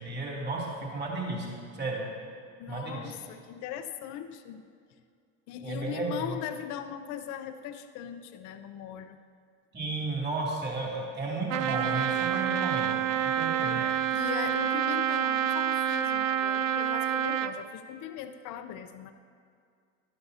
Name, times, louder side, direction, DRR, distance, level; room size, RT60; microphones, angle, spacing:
voice 1, 0.0-2.1 2.7-3.1 5.6-6.2 9.7-13.0 13.3-13.8, right 2 dB, 25° right, -3 dB, 2.9 m, -33 dB
voice 2, 2.6-4.6 5.5-9.2 13.6-19.1, left 9 dB, 50° left, 8 dB, 0.6 m, -39 dB
Trumpet, 11.5-17.6, right 10 dB, 80° right, 0.5 m, -28 dB
12.5 x 11.0 x 2.8 m, 2.2 s
hypercardioid pair, 75°, 38 cm